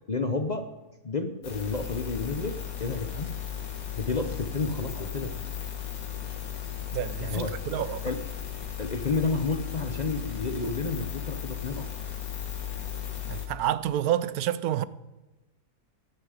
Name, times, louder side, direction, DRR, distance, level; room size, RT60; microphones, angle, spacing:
voice 1, 0.1-0.7 1.0-3.3 3.9-5.3 7.2-8.2 8.8-11.9, left 3 dB, 40° left, 0.7 m, -31 dB
sound 1, 1.4-13.5, left 10 dB, 65° left, 2.1 m, -36 dB
voice 2, 6.9-8.1 13.3-14.8, right 11 dB, 75° right, 1.0 m, -29 dB
14.5 x 11.0 x 5.0 m
omnidirectional pair, 1.6 m